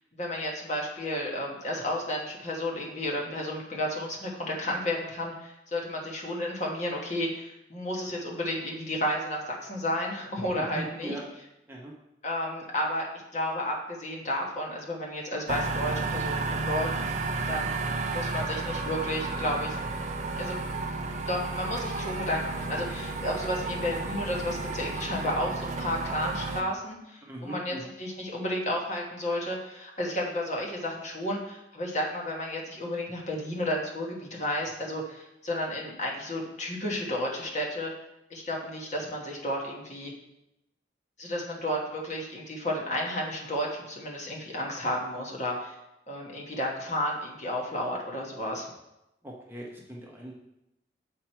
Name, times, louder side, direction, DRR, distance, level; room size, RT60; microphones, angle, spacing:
voice 1, 0.1-11.2 12.2-13.1 13.3-17.2 17.5-17.7 18.1-19.8 20.4-20.6 21.3-37.9 38.3-40.1 41.2-45.7 46.1-48.6, left 1 dB, 40° left, -2 dB, 1.4 m, -32 dB
voice 2, 10.6-11.2 11.7-11.9 27.3-27.9 49.2-50.3, right 1 dB, 10° right, -3 dB, 0.9 m, -39 dB
sound 1, 15.5-26.6, right 3 dB, 40° right, 0.5 m, -32 dB
7.4 x 4.6 x 4.4 m, 0.89 s
head